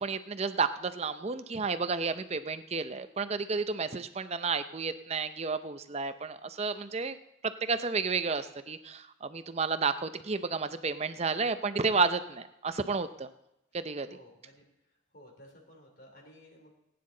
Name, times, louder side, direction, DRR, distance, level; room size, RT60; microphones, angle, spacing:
voice 1, 0.0-7.2 7.4-13.3 13.7-14.1, right 4 dB, 30° right, 11 dB, 0.5 m, -31 dB
voice 2, 14.1-14.6 15.1-16.7, left 1 dB, 50° left, 0 dB, 3.0 m, -54 dB
19.5 x 9.5 x 3.8 m, 0.88 s
head